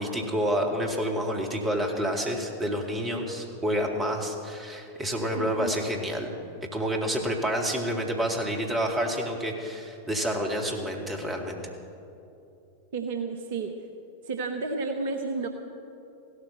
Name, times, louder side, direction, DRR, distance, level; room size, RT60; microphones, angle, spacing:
voice 1, 0.0-6.3 6.7-11.6, equal, 15° right, 2 dB, 2.3 m, -28 dB
voice 2, 5.4-5.8 12.9-13.7 14.3-15.5, right 4 dB, 50° right, 6 dB, 1.0 m, -31 dB
16.0 x 13.0 x 6.6 m, 2.9 s
figure-of-eight pair, 90°, 0 cm